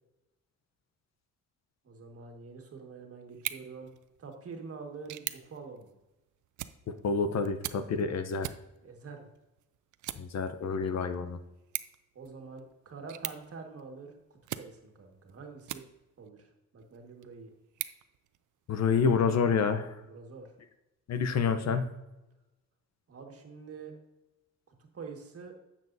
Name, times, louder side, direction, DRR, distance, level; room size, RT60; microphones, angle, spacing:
voice 1, 1.8-3.9 4.2-5.9 8.8-9.3 12.1-15.8 16.2-17.5 20.0-20.5 23.1-23.9 24.7-25.5, right 4 dB, 45° right, 3 dB, 1.7 m, -46 dB
sound 1, 3.3-16.3 16.8-18.8, right 13 dB, 70° right, 0.5 m, -44 dB
voice 2, 6.9-8.5 10.2-11.4 18.7-20.0 21.1-21.9, left 5 dB, 55° left, 10 dB, 0.8 m, -28 dB
10.0 x 7.2 x 2.7 m, 0.99 s
cardioid pair, 95°, 31 cm